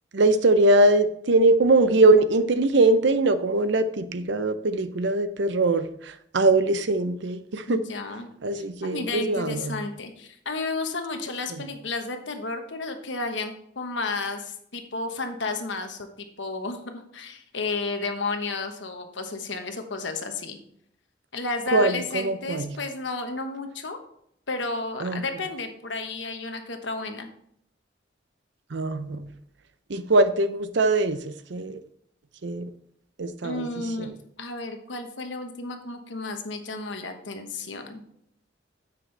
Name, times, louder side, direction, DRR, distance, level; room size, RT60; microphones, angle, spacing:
voice 1, 0.1-7.8 8.4-9.8 21.7-22.7 25.0-25.2 28.7-29.3 29.9-31.8 32.4-32.7 33.2-33.6 34.0-34.1, right 2 dB, 70° right, 12 dB, 0.6 m, -22 dB
voice 2, 7.7-8.3 8.5-20.6 21.3-24.0 24.5-27.3 31.7-31.8 33.4-38.0, left 3 dB, 70° left, 6 dB, 1.2 m, -32 dB
9.9 x 7.6 x 3.3 m, 0.71 s
head